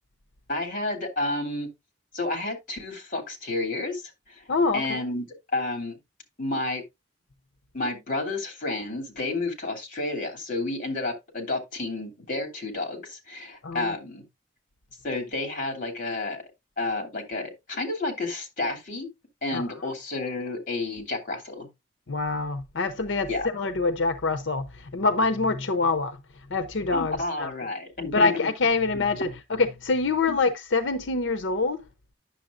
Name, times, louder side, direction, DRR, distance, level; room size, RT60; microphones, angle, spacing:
voice 1, 0.5-1.7 2.1-4.5 4.7-6.0 6.4-6.8 7.7-14.2 15.0-16.4 16.8-19.1 19.4-21.7 23.3-23.5 26.9-28.4 28.9-29.1 30.3-30.4, left 2 dB, 45° left, 2.9 m, -31 dB
voice 2, 4.5-5.0 13.6-13.9 19.5-19.6 22.1-26.2 26.5-27.5 28.1-31.8, left 3 dB, 80° left, 0.7 m, -25 dB
9.9 x 7.0 x 2.5 m
head